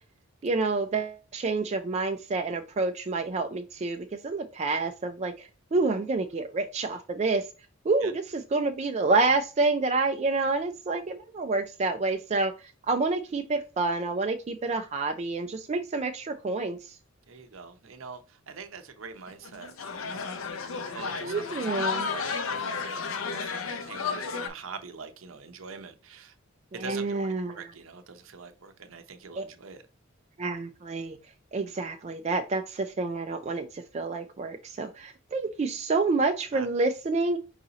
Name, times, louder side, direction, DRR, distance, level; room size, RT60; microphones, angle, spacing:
voice 1, 0.4-7.5 7.8-12.5 12.9-16.9 21.2-22.1 26.8-27.6 29.4-29.5 30.4-31.2 31.5-37.4, right 3 dB, 35° right, 0.4 m, -28 dB
voice 2, 17.3-26.3 26.7-29.8 36.5-36.7, right 5 dB, 70° right, 0.7 m, -44 dB
sound 1, 19.3-24.5, left 5 dB, 75° left, 0.6 m, -33 dB
4.8 x 2.7 x 3.9 m
head